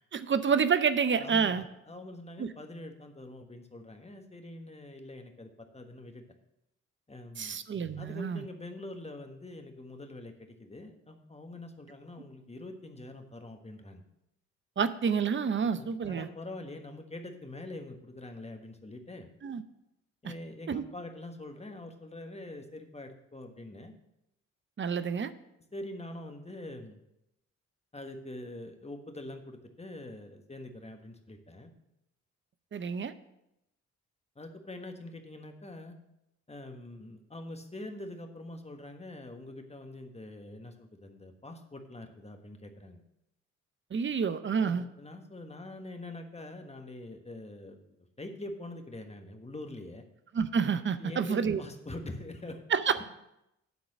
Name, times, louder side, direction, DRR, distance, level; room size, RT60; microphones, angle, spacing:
voice 1, 0.1-1.7 2.4-2.5 7.4-8.4 14.8-16.3 19.4-19.6 20.7-20.8 24.8-25.3 32.7-33.1 43.9-44.8 50.3-51.6 52.7-53.0, right 6 dB, 35° right, 12 dB, 0.7 m, -28 dB
voice 2, 1.2-6.2 7.1-7.6 8.0-14.0 15.6-19.3 20.2-23.9 25.7-27.0 27.9-31.7 34.3-36.0 36.5-43.0 44.6-47.8 48.2-50.0 51.0-52.6 53.0-53.1, left 1 dB, 20° left, 5 dB, 1.4 m, -44 dB
9.5 x 3.9 x 7.2 m, 0.86 s
supercardioid pair, 50°, 32 cm